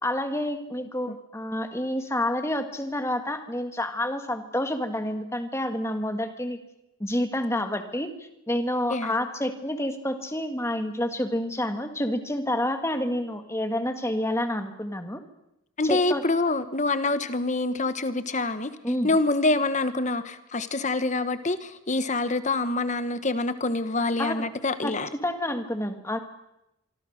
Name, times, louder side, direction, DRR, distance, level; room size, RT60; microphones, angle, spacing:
voice 1, 0.0-6.6 7.0-15.2 15.8-16.2 18.8-19.2 24.2-24.5 24.8-24.9 25.2-26.2, left 1 dB, 10° left, 7 dB, 1.9 m, -29 dB
voice 2, 15.8-18.7 19.0-25.1, left 2 dB, 35° left, 12 dB, 1.2 m, -26 dB
25.0 x 24.5 x 6.6 m, 0.86 s
head